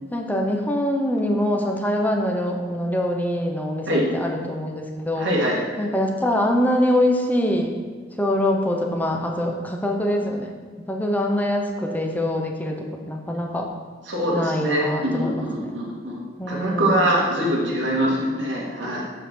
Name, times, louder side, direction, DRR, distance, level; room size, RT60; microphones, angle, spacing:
voice 1, 0.1-5.3 5.8-7.8 8.2-10.5 10.9-13.7 14.3-15.8 16.4-17.0, left 1 dB, 10° left, 1 dB, 0.8 m, -24 dB
voice 2, 5.2-5.6 14.0-16.2 16.5-19.0, right 1 dB, 75° right, -4 dB, 2.4 m, -23 dB
7.6 x 5.7 x 6.3 m, 1.4 s
head